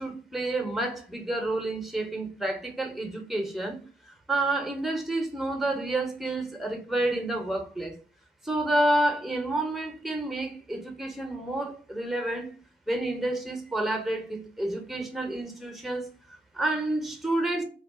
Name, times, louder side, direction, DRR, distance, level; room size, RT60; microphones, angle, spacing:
voice 1, 0.0-3.8 4.0-7.9 8.4-12.5 12.9-17.6, right 1 dB, ahead, 0.9 m, -29 dB
2.3 x 2.3 x 3.6 m
hypercardioid pair, 45°, 21 cm